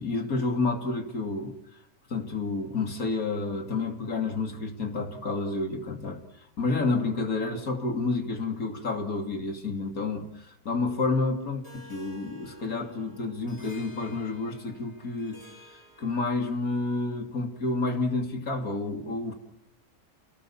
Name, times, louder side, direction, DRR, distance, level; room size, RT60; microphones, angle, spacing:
voice 1, 0.0-1.6 2.1-6.2 6.6-15.4 15.7-19.3, left 3 dB, 70° left, 4 dB, 3.3 m, -30 dB
Harp, 11.6-16.6, equal, 20° left, 5.9 m, -52 dB
29.5 x 19.0 x 7.2 m, 0.79 s
omnidirectional pair, 1.5 m